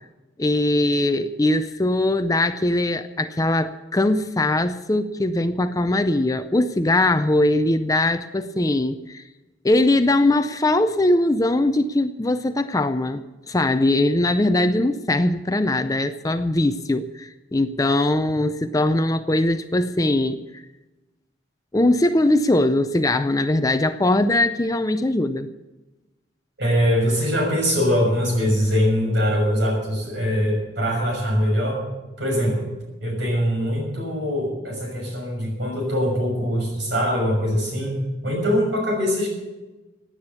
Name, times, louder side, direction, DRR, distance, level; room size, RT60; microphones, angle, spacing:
voice 1, 0.4-9.2 9.6-20.6 21.7-25.5, left 1 dB, 20° left, 10 dB, 0.5 m, -21 dB
voice 2, 26.6-31.8 32.2-32.7 33.0-37.9 38.2-39.3, equal, 65° right, 1 dB, 6.3 m, -22 dB
16.5 x 9.7 x 7.1 m, 1.1 s
head